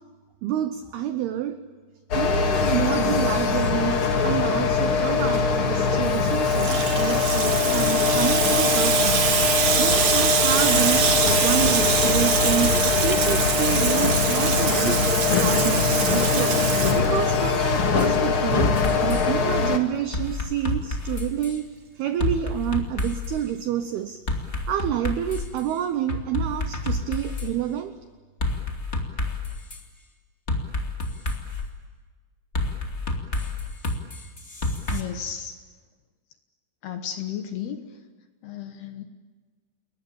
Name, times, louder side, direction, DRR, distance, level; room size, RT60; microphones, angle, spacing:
voice 1, 0.4-1.6 2.1-9.4 9.8-15.1 15.4-16.6 16.9-18.7 19.0-21.7 22.0-24.2 24.7-27.9, right 11 dB, 85° right, 10 dB, 2.2 m, -28 dB
sound 1, 2.1-19.8, left 5 dB, 85° left, 1.2 m, -22 dB
Water tap faucet / Sink (filling or washing), 6.1-17.6, right 7 dB, 55° right, 1.9 m, -24 dB
sound 2, 18.6-19.3 20.1-21.6 22.2-23.4 24.3-25.6 26.1-27.5 28.4-29.8 30.5-31.7 32.5-35.0, left 2 dB, 30° left, 1.2 m, -28 dB
voice 2, 34.9-35.5 36.8-37.8 38.4-39.0, left 9 dB, 70° left, 7 dB, 2.6 m, -33 dB
30.0 x 21.5 x 8.8 m, 1.4 s
omnidirectional pair, 5.8 m